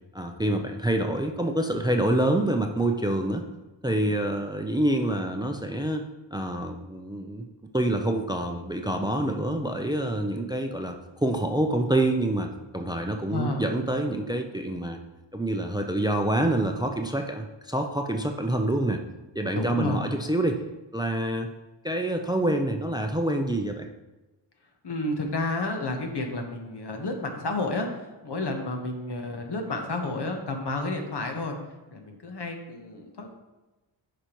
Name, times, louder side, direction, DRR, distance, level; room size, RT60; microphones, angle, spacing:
voice 1, 0.1-3.5 3.8-7.5 7.7-15.0 15.3-19.0 19.3-20.6 20.9-21.5 21.8-23.9, right 1 dB, 10° right, 4 dB, 0.5 m, -27 dB
voice 2, 13.3-14.1 19.5-20.1 24.8-27.9 28.2-31.6 31.9-33.3, left 2 dB, 55° left, 3 dB, 1.2 m, -31 dB
9.1 x 5.2 x 3.0 m, 1.1 s
cardioid pair, 70°, 47 cm